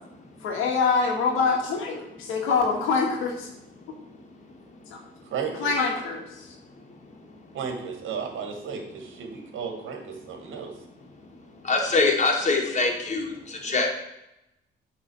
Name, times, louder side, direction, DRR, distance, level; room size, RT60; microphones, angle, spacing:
voice 1, 0.4-3.5 4.9-5.0 5.6-6.4, left 5 dB, 90° left, 1 dB, 1.9 m, -25 dB
voice 2, 5.3-5.7 7.5-10.7, right 6 dB, 80° right, 3 dB, 1.7 m, -34 dB
voice 3, 11.7-13.3 13.6-13.9, left 3 dB, 35° left, 0 dB, 2.0 m, -23 dB
8.6 x 3.9 x 6.3 m, 0.86 s
cardioid pair, 90°, 20 cm